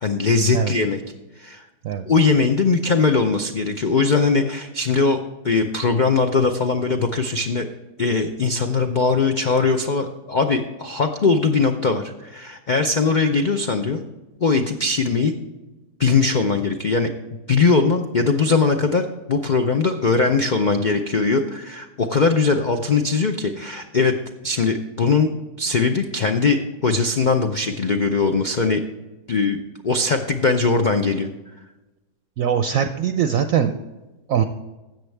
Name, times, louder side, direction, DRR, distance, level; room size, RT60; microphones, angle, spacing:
voice 1, 0.0-1.0 1.4-1.7 2.1-7.7 8.0-14.0 14.4-15.3 16.0-17.1 17.5-24.2 24.4-25.3 25.6-28.8 29.3-29.6 29.8-31.3, left 4 dB, 80° left, 5 dB, 0.4 m, -20 dB
voice 2, 32.4-33.7 34.3-34.4, right 8 dB, 65° right, 8 dB, 0.9 m, -21 dB
13.5 x 8.0 x 3.4 m, 1.1 s
omnidirectional pair, 1.7 m